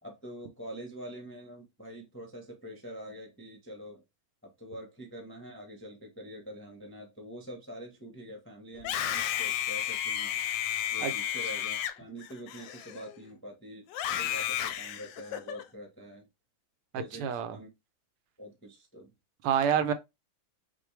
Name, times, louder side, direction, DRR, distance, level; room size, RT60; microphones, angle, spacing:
voice 1, 0.0-4.0 4.4-10.4 10.9-16.3 16.9-17.7 18.4-19.1, equal, 15° left, 0.5 m, -45 dB
Screaming, 8.7-13.3 13.9-15.6, left 11 dB, 75° left, 1.1 m, -33 dB
voice 2, 16.9-17.6 19.4-19.9, right 8 dB, 90° right, 1.6 m, -27 dB
6.0 x 2.6 x 3.2 m
omnidirectional pair, 2.4 m